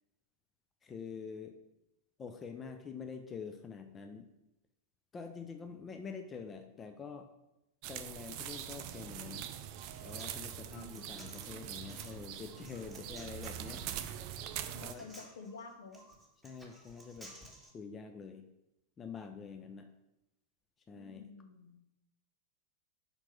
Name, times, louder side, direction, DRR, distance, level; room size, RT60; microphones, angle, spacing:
voice 1, 0.8-1.6 2.2-4.3 5.1-7.3 7.9-9.5 10.0-13.8 14.8-15.1 16.4-17.3 17.7-18.5 19.0-19.9 20.9-21.3, left 5 dB, 20° left, 6 dB, 0.5 m, -46 dB
sound 1, 7.8-14.9, right 10 dB, 45° right, 0.5 m, -43 dB
Human voice, 9.9-17.7, right 1 dB, 5° left, 1.7 m, -56 dB
voice 2, 10.8-11.1 14.7-16.0 20.9-21.8, left 3 dB, 65° left, 5 dB, 0.9 m, -50 dB
5.2 x 4.5 x 5.8 m, 0.90 s
figure-of-eight pair, 90°, 0 cm